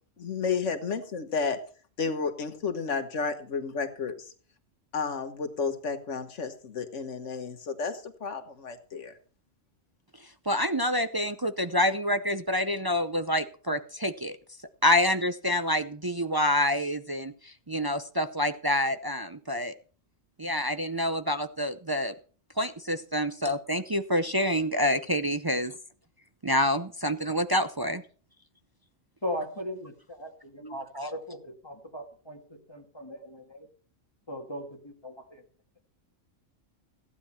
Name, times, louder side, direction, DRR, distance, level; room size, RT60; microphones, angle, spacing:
voice 1, 0.2-1.6 2.0-4.2 4.9-9.1, left 5 dB, 65° left, 8 dB, 1.6 m, -32 dB
voice 2, 10.5-14.4 14.8-19.7 20.4-22.1 22.6-25.7 26.4-28.0, left 1 dB, 30° right, 9 dB, 0.4 m, -27 dB
voice 3, 29.2-29.9 30.2-33.7 34.3-35.4, left 1 dB, 20° left, 3 dB, 1.8 m, -38 dB
15.5 x 9.8 x 4.3 m, 0.43 s
omnidirectional pair, 1.4 m